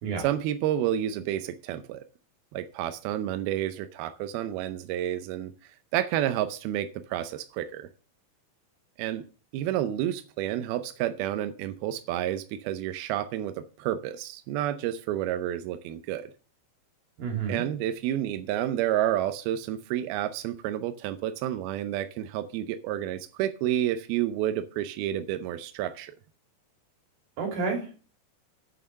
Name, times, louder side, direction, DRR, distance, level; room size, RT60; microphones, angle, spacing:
voice 1, 0.2-2.0 2.5-5.5 5.9-7.9 9.0-9.2 9.5-16.3 17.5-26.1, right 12 dB, 80° right, 10 dB, 2.2 m, -30 dB
voice 2, 17.2-17.6 27.4-28.1, right 5 dB, 55° right, 2 dB, 4.2 m, -30 dB
8.1 x 7.6 x 6.3 m, 0.37 s
omnidirectional pair, 5.2 m